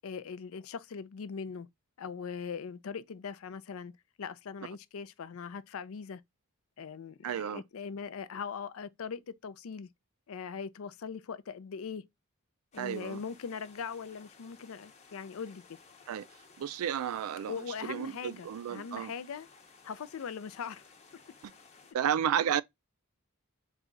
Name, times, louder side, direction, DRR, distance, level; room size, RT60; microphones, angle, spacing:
voice 1, 0.0-1.7 2.0-3.9 4.2-6.2 6.8-9.9 10.3-12.0 12.7-15.8 17.5-19.5 19.8-20.9, left 6 dB, 70° left, 0.4 m, -40 dB
voice 2, 7.2-7.6 12.8-13.2 16.1-16.3 16.6-17.5 17.8-19.1 21.4-21.5 21.9-22.6, right 9 dB, 75° right, 0.3 m, -32 dB
sound 1, 12.7-21.9, left 4 dB, 30° left, 0.7 m, -58 dB
4.1 x 2.3 x 3.7 m
head